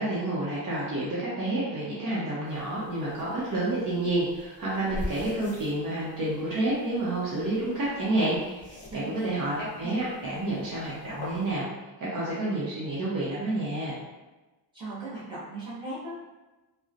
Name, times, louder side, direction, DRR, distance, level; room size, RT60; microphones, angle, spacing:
voice 1, 0.0-11.7 12.0-14.0, right 2 dB, 45° right, -8 dB, 0.7 m, -29 dB
sound 1, 2.4-11.5, left 1 dB, 15° left, 0.9 m, -44 dB
voice 2, 8.9-10.0 14.7-16.2, right 2 dB, 10° right, -11 dB, 0.8 m, -38 dB
2.9 x 2.1 x 2.4 m, 1.1 s
cardioid pair, 170°, 46 cm